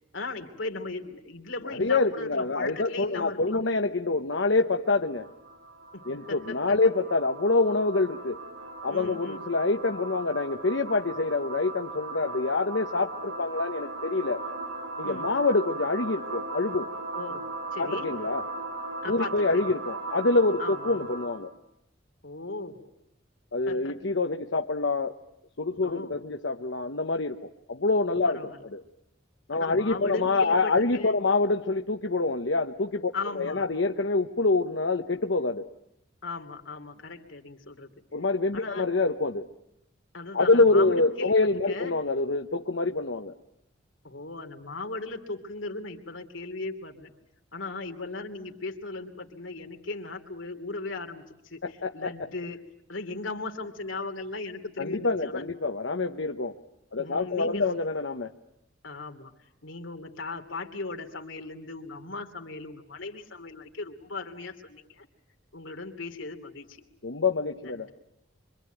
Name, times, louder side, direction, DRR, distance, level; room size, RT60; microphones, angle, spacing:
voice 1, 0.1-3.6 5.9-6.4 8.9-9.4 15.0-15.3 17.1-17.5 17.7-18.1 19.0-19.6 20.6-21.0 22.2-22.8 23.7-24.0 25.8-26.2 28.2-28.6 29.5-31.2 33.1-33.6 36.2-37.9 38.5-38.9 40.1-41.3 41.7-41.9 44.0-47.1 47.5-55.5 57.0-57.7 58.8-59.3 59.6-65.1 65.5-66.8 67.6-67.8, left 3 dB, 90° left, 5 dB, 2.9 m, -37 dB
voice 2, 1.8-5.3 6.0-8.4 8.8-14.4 15.0-16.9 17.8-18.4 19.0-21.5 23.5-25.2 25.6-27.4 27.7-28.8 29.5-35.7 38.1-39.5 40.3-43.3 51.6-52.3 54.8-56.5 56.9-58.3 67.0-67.9, left 3 dB, 70° left, 5 dB, 1.0 m, -26 dB
sound 1, 4.9-21.5, right 2 dB, 85° right, 4.7 m, -38 dB
25.5 x 25.0 x 9.2 m, 0.79 s
head